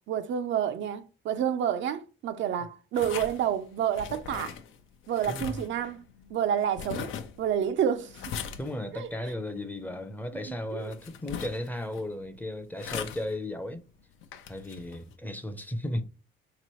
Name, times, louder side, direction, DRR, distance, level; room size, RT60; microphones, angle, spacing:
voice 1, 0.1-4.6 5.1-6.0 6.3-8.1 8.9-9.1 10.5-10.9, right 9 dB, 70° right, 0.5 m, -29 dB
sound 1, 2.9-15.1, left 7 dB, 85° left, 0.6 m, -42 dB
voice 2, 5.3-5.6 8.6-13.9 14.5-16.0, left 1 dB, 10° left, 0.5 m, -35 dB
3.9 x 2.9 x 3.0 m
cardioid pair, 90°, 20 cm